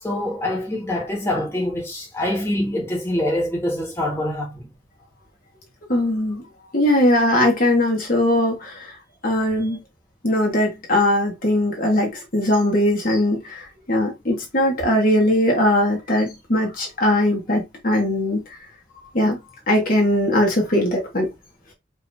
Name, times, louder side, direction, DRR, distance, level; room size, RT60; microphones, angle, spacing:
voice 1, 0.0-4.7, left 1 dB, 15° left, 1.4 m, -25 dB
voice 2, 5.9-6.4 6.7-8.9 9.2-9.8 10.2-18.6 19.1-19.4 19.7-21.3, left 1 dB, 50° left, 1.4 m, -20 dB
5.0 x 2.9 x 2.6 m
head